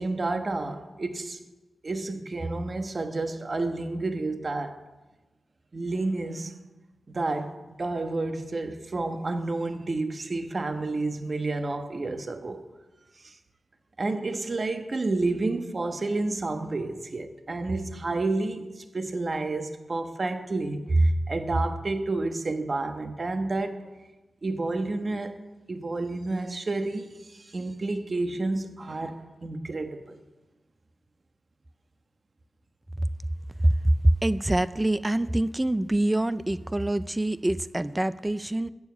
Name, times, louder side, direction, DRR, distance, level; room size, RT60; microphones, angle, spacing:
voice 1, 0.0-1.4 1.8-4.7 5.7-6.5 7.1-7.5 7.8-12.6 13.2-13.3 14.0-23.9 24.4-25.3 25.7-29.2 29.4-30.2, right 2 dB, 35° right, 7 dB, 1.2 m, -29 dB
voice 2, 33.6-38.7, right 1 dB, 15° right, 15 dB, 0.4 m, -25 dB
14.5 x 7.2 x 9.4 m, 1.1 s
wide cardioid pair, 140°, 0 cm